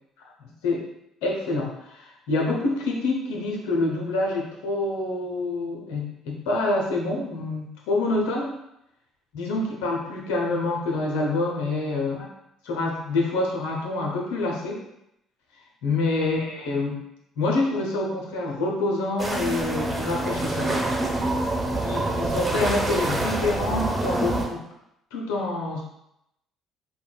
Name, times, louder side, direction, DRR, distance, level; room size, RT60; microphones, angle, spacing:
voice 1, 0.4-0.8 1.2-8.5 9.3-12.3 12.6-14.8 15.8-17.0 17.4-20.8 21.8-24.6 25.1-25.8, left 2 dB, 80° left, -1 dB, 0.8 m, -27 dB
sound 1, 19.2-24.5, right 2 dB, 30° right, 1.2 m, -26 dB
5.4 x 2.3 x 2.3 m, 0.82 s
hypercardioid pair, 55°, 0 cm